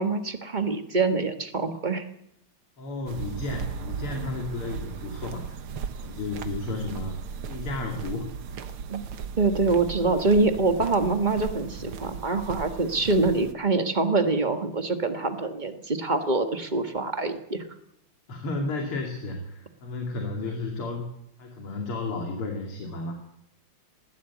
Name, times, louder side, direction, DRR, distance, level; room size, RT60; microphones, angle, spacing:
voice 1, 0.0-2.0 8.9-9.0 9.4-17.7, right 3 dB, 25° right, 7 dB, 1.5 m, -25 dB
voice 2, 2.8-5.6 5.9-7.2 7.5-8.3 18.3-21.1 21.4-23.2, left 2 dB, 85° left, 2 dB, 3.5 m, -33 dB
sound 1, 3.1-13.5, right 6 dB, 80° right, 2.1 m, -37 dB
20.0 x 15.5 x 8.3 m, 0.77 s
omnidirectional pair, 2.3 m